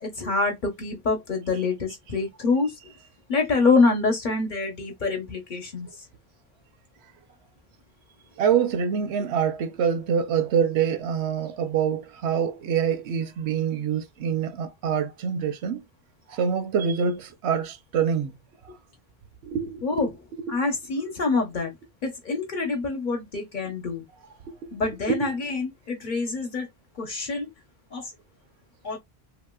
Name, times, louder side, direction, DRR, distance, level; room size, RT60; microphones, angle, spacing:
voice 1, 0.0-2.7 3.3-5.9 19.8-20.1 20.5-21.8 22.0-24.0 24.7-26.7 27.0-27.5 27.9-28.1 28.8-29.0, left 3 dB, 50° left, 1.0 m, -26 dB
voice 2, 8.4-15.8 16.3-18.4 19.4-19.8 25.1-25.2, right 7 dB, 90° right, 0.9 m, -25 dB
2.9 x 2.8 x 2.2 m
omnidirectional pair, 1.1 m